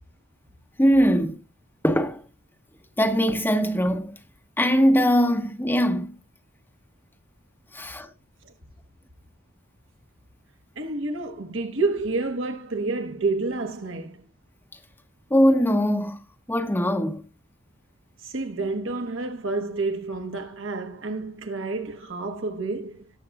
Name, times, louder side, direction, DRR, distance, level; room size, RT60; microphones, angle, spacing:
voice 1, 0.8-1.4 1.8-2.2 3.0-4.1 4.6-6.2 7.7-8.1 15.3-16.2 16.5-17.2, equal, 10° left, 0.9 m, -21 dB
voice 2, 10.7-14.2 18.2-23.1, right 3 dB, 70° right, 1.4 m, -29 dB
18.5 x 6.8 x 2.4 m
head